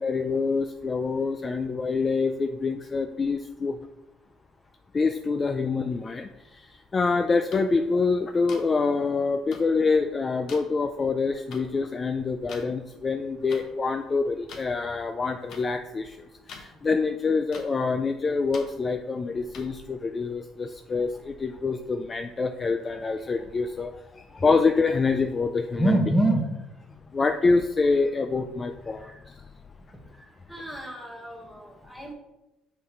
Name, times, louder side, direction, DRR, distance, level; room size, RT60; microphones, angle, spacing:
voice 1, 0.0-3.8 4.9-26.0 27.1-29.4, left 4 dB, 30° left, 7 dB, 0.3 m, -26 dB
sound 1, 7.5-7.6 8.5-8.6 9.5-9.6 10.5-10.6 11.5-11.6 12.5-12.6 13.5-13.6 14.5-14.6 15.5-15.6 16.5-16.7 17.5-17.6 18.5-18.6 19.5-19.6, left 5 dB, 60° left, 1.0 m, -42 dB
voice 2, 25.8-26.4 30.5-32.1, right 1 dB, 5° left, 0 dB, 1.5 m, -26 dB
6.1 x 5.3 x 3.1 m, 0.96 s
cardioid pair, 95°, 0 cm